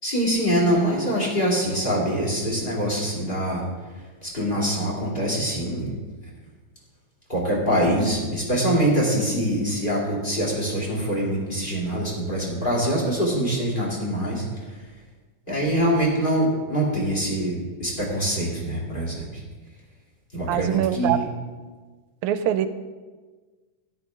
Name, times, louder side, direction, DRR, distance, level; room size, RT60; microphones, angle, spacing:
voice 1, 0.0-3.6 4.2-5.9 7.3-14.4 15.5-19.3 20.3-21.3, right 1 dB, 15° left, -4 dB, 2.8 m, -24 dB
voice 2, 20.5-21.2 22.2-22.7, right 11 dB, 90° right, 11 dB, 2.0 m, -23 dB
13.0 x 11.0 x 3.7 m, 1.3 s
omnidirectional pair, 3.3 m